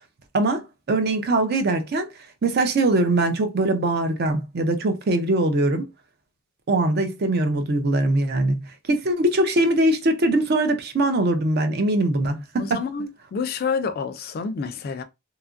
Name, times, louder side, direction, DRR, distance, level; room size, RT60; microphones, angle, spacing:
voice 1, 0.3-2.1 2.4-5.9 6.7-12.8, right 2 dB, 50° right, 0.5 m, -22 dB
voice 2, 12.6-15.0, left 5 dB, 50° left, 0.3 m, -28 dB
2.8 x 2.4 x 2.4 m
head